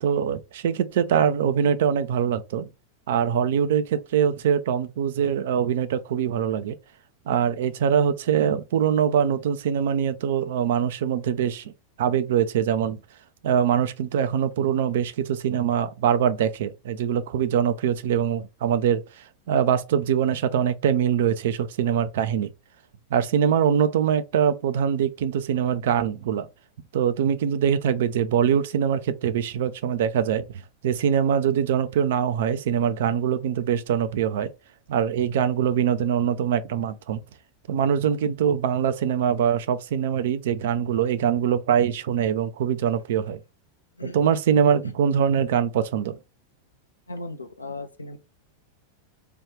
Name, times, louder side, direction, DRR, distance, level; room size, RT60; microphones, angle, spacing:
voice 1, 0.0-2.7 3.1-6.8 7.3-11.7 12.0-13.0 13.4-19.0 19.5-22.5 23.1-26.5 26.9-30.5 30.8-34.5 34.9-37.2 37.7-43.4 44.1-46.2, right 8 dB, 55° right, 0.4 m, -23 dB
voice 2, 47.1-48.2, left 2 dB, 80° left, 0.4 m, -36 dB
3.4 x 2.3 x 3.1 m
figure-of-eight pair, 90°, 0 cm